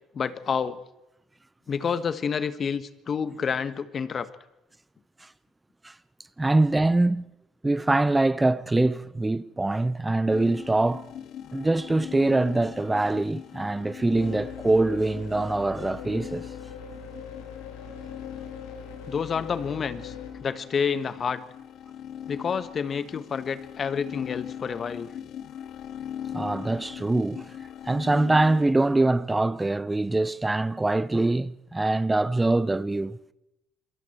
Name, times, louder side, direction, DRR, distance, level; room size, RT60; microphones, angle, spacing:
voice 1, 0.1-0.8 1.7-4.3 19.1-20.1 20.4-21.4 22.3-25.1, left 6 dB, 50° left, 1.5 m, -29 dB
voice 2, 6.4-7.3 7.6-11.1 11.5-16.5 26.3-27.6 27.8-33.2, right 2 dB, 15° right, 0.7 m, -24 dB
sound 1, 10.3-28.7, left 9 dB, 65° left, 1.0 m, -40 dB
sound 2, 14.1-20.3, left 6 dB, 90° left, 3.4 m, -42 dB
27.5 x 22.5 x 4.6 m
hypercardioid pair, 60°, 0 cm